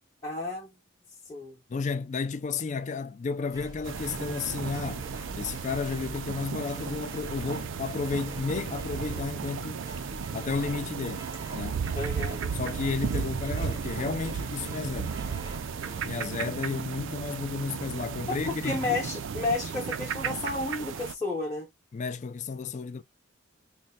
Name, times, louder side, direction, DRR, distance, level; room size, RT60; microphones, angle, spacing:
voice 1, 0.2-0.7 1.3-1.6 11.9-12.5 18.4-21.7, left 3 dB, 15° left, 0.8 m, -32 dB
voice 2, 1.7-5.1 5.4-9.9 10.3-11.3 11.5-11.8 12.5-15.1 16.0-19.0 21.9-23.0, left 4 dB, 35° left, 0.3 m, -32 dB
sound 1, 3.5-17.1, right 1 dB, 15° right, 0.6 m, -44 dB
sound 2, 3.8-21.1, right 6 dB, 60° right, 0.4 m, -35 dB
3.2 x 2.1 x 4.0 m
head